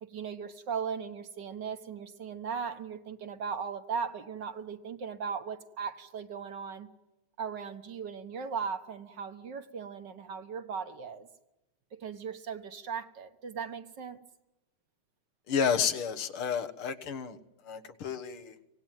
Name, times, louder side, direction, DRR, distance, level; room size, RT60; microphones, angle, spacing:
voice 1, 0.0-6.9 7.4-11.3 11.9-14.2, right 6 dB, 60° right, 8 dB, 1.9 m, -38 dB
voice 2, 15.5-17.4 17.6-18.5, left 7 dB, 90° left, 8 dB, 2.2 m, -31 dB
24.5 x 18.0 x 9.2 m, 0.99 s
omnidirectional pair, 2.3 m